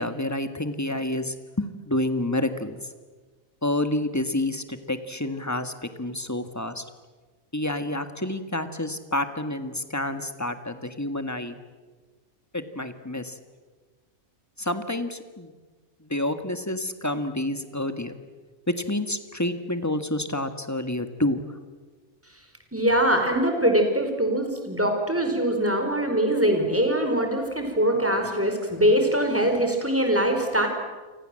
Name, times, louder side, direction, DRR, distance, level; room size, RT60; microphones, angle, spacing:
voice 1, 0.0-2.8 3.6-6.8 7.5-11.6 12.5-13.4 14.6-15.5 16.0-18.2 18.7-21.4, left 1 dB, 10° left, 8 dB, 1.7 m, -29 dB
voice 2, 22.7-30.7, right 1 dB, 10° right, 4 dB, 4.6 m, -23 dB
29.5 x 24.5 x 7.8 m, 1.3 s
omnidirectional pair, 1.5 m